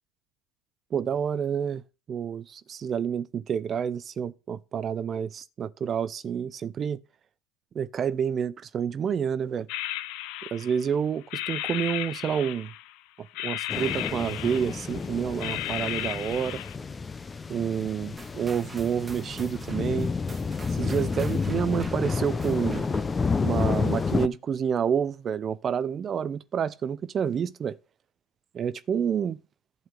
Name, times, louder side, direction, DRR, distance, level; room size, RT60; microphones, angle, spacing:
voice 1, 0.9-1.8 2.1-7.0 7.7-9.7 10.5-12.7 13.4-16.6 17.5-20.1 20.7-22.8 23.4-27.8 28.5-29.4, right 7 dB, 35° right, 0.5 m, -29 dB
sound 1, 9.7-10.9 11.3-13.0 13.4-15.0 15.4-16.8, left 14 dB, 60° left, 0.6 m, -34 dB
sound 2, 13.7-24.3, left 4 dB, 20° left, 0.7 m, -30 dB
sound 3, 18.2-23.2, right 3 dB, 15° right, 1.5 m, -46 dB
11.5 x 4.0 x 7.7 m
hypercardioid pair, 80°, 0 cm